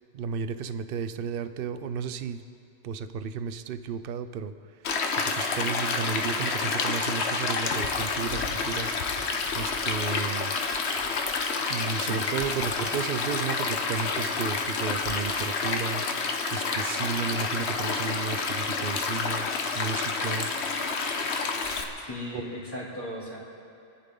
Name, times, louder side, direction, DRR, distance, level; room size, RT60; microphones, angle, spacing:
voice 1, 0.1-2.4 2.8-8.9 9.5-10.5 11.7-19.5 19.7-20.5 22.3-22.4, right 6 dB, 60° right, 11 dB, 0.8 m, -33 dB
Stream, 4.8-21.8, left 4 dB, 80° left, 1.2 m, -29 dB
voice 2, 22.0-23.4, left 1 dB, 20° left, -6 dB, 3.0 m, -37 dB
28.5 x 10.5 x 3.8 m, 2.5 s
omnidirectional pair, 1.1 m